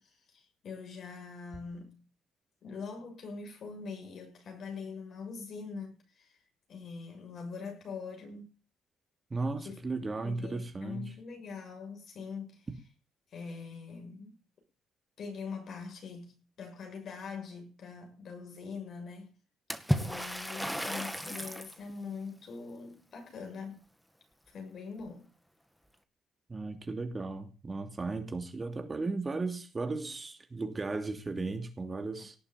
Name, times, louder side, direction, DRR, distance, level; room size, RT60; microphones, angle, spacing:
voice 1, 0.0-2.0 2.6-6.4 6.7-8.5 9.5-12.7 13.3-14.3 15.2-19.3 20.0-23.8 24.5-25.3, left 5 dB, 60° left, 7.0 m, -43 dB
voice 2, 9.3-11.1 26.5-32.3, right 3 dB, 30° right, 2.8 m, -35 dB
Water / Splash splatter, 19.7-21.8, equal, ahead, 2.1 m, -33 dB
18.5 x 7.0 x 9.1 m
cardioid pair, 90°, 0 cm